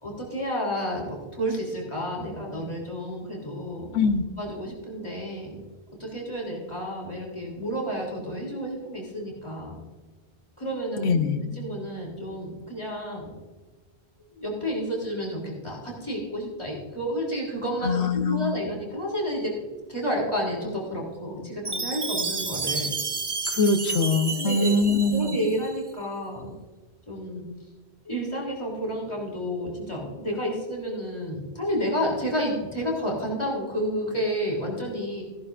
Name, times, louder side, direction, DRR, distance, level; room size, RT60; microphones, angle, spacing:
voice 1, 0.0-4.0 4.4-5.6 6.0-9.8 10.6-11.1 11.5-13.3 14.3-19.5 19.9-22.9 24.3-24.7 25.1-26.5 27.1-27.4 28.0-35.2, equal, 25° left, -2 dB, 3.3 m, -30 dB
voice 2, 3.9-4.2 11.0-11.4 17.8-18.6 23.5-25.4, left 3 dB, 80° left, 8 dB, 1.2 m, -23 dB
Chime, 21.6-25.8, right 4 dB, 30° right, 0.6 m, -31 dB
15.5 x 11.0 x 2.5 m, 1.3 s
omnidirectional pair, 1.1 m